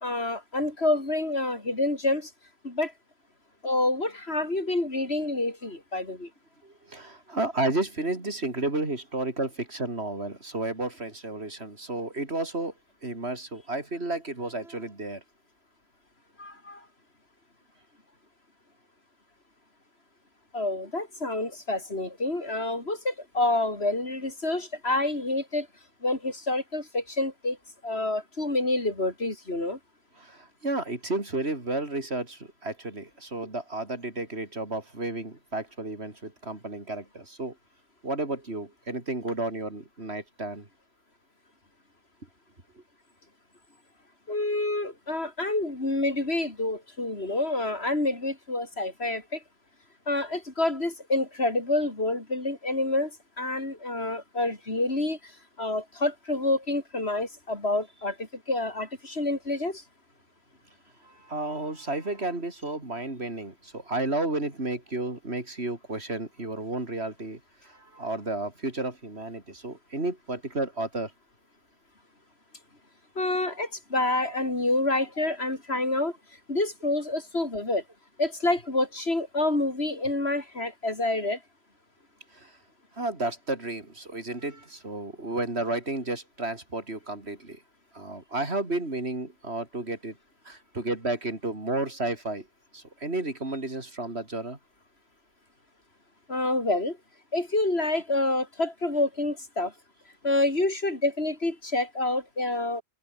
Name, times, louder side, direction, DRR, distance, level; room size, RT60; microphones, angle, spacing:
voice 1, 0.0-2.3 2.6-2.9 3.6-6.3 16.4-16.8 20.5-25.7 26.0-27.6 27.8-29.8 44.3-49.4 50.1-53.1 53.4-55.2 55.6-59.8 73.1-76.1 76.5-77.8 78.2-81.4 96.3-97.0 97.3-99.7 100.2-102.8, left 2 dB, 80° left, 5.1 m, -28 dB
voice 2, 6.6-12.7 13.0-15.2 30.2-37.5 38.0-40.7 61.0-71.1 74.3-74.5 82.3-82.5 83.0-87.6 87.9-90.2 90.4-92.5 92.7-94.6, right 2 dB, 90° right, 4.7 m, -32 dB
omnidirectional pair, 1.1 m